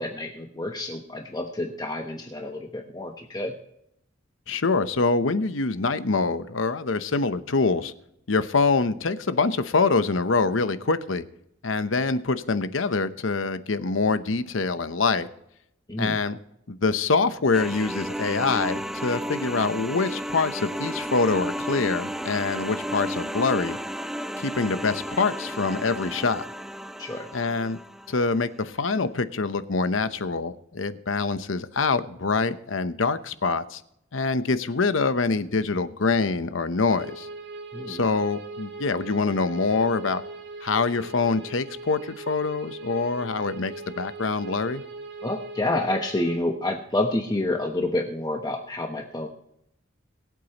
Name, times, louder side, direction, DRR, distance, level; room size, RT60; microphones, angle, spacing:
voice 1, 0.0-3.5 15.9-16.2 27.0-27.3 37.7-38.0 45.2-49.3, left 2 dB, 20° left, 3 dB, 1.0 m, -28 dB
voice 2, 4.5-7.9 8.3-11.2 11.6-15.3 16.0-16.4 16.7-23.8 24.4-26.4 27.3-27.8 28.1-33.8 34.1-37.3 37.9-40.2 40.6-44.8, left 4 dB, 80° left, 12 dB, 0.9 m, -25 dB
sound 1, 17.5-28.3, equal, ahead, 0.4 m, -33 dB
sound 2, 36.9-46.4, right 3 dB, 60° right, 2.8 m, -40 dB
22.5 x 8.3 x 3.0 m, 0.77 s
head